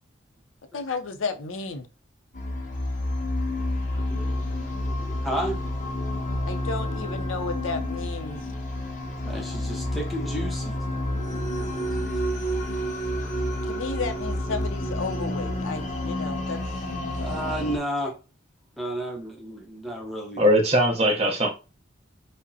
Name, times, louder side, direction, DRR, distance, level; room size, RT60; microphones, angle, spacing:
voice 1, 0.7-1.9 6.5-8.4 13.6-16.6 17.1-17.2, left 4 dB, 80° left, 0.5 m, -32 dB
sound 1, 2.3-17.8, left 1 dB, 35° left, 0.6 m, -29 dB
voice 2, 3.5-4.4 5.2-5.6 9.2-10.8 11.1-11.6 12.0-12.1 13.2-13.4 17.2-18.1 18.8-20.4, right 1 dB, ahead, 0.7 m, -33 dB
voice 3, 20.4-21.5, equal, 30° right, 0.8 m, -20 dB
4.9 x 2.1 x 2.7 m
head